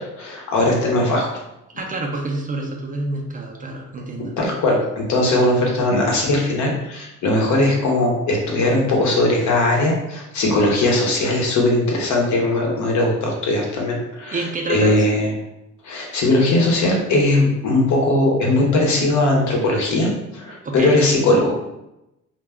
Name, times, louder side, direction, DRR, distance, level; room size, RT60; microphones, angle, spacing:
voice 1, 0.2-1.4 4.4-15.3 15.8-21.6, left 2 dB, 70° left, -1 dB, 0.8 m, -19 dB
voice 2, 1.7-4.3 14.3-15.1 20.6-21.0, right 2 dB, 30° right, 1 dB, 0.4 m, -27 dB
2.2 x 2.2 x 3.5 m, 0.90 s
cardioid pair, 90°, 30 cm